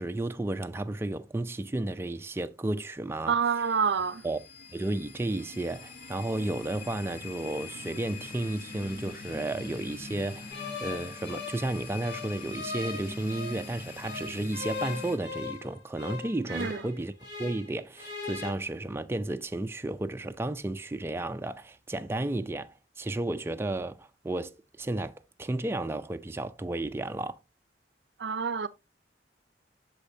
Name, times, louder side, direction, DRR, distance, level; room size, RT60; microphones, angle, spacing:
voice 1, 0.0-3.3 4.2-4.4 4.7-17.1 17.4-27.4, right 2 dB, 15° right, 0.4 m, -33 dB
voice 2, 3.3-4.3 16.5-16.8 28.2-28.7, right 6 dB, 70° right, 0.5 m, -27 dB
sound 1, 3.5-15.2, left 4 dB, 55° left, 1.4 m, -44 dB
sound 2, 10.5-13.7 14.0-17.7 18.0-18.5, left 4 dB, 70° left, 3.6 m, -39 dB
8.3 x 6.3 x 2.7 m
head